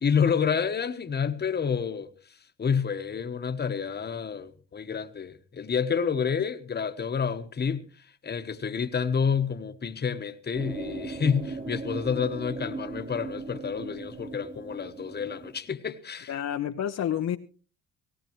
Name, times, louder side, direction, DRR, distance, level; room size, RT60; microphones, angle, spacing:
voice 1, 0.0-2.1 2.6-7.8 8.2-16.3, left 6 dB, 35° left, 1.2 m, -29 dB
sound 1, 10.5-15.6, right 3 dB, 40° right, 2.2 m, -38 dB
voice 2, 16.3-17.4, left 10 dB, 60° left, 0.8 m, -29 dB
18.0 x 17.5 x 3.1 m
cardioid pair, 90°, 30 cm